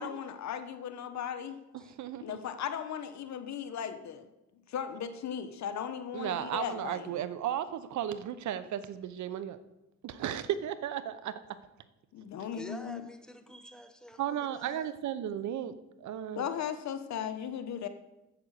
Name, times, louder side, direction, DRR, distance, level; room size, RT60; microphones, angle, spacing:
voice 1, 0.0-1.6 2.2-4.3 4.7-7.2 12.1-13.0 16.3-17.9, left 8 dB, 65° left, 9 dB, 1.1 m, -37 dB
voice 2, 1.7-2.4 6.1-9.6 10.0-11.4 14.2-16.5, right 10 dB, 70° right, 14 dB, 0.8 m, -35 dB
voice 3, 12.5-14.9, equal, ahead, 7 dB, 1.2 m, -47 dB
8.7 x 7.4 x 6.6 m, 0.95 s
cardioid pair, 90°, 30 cm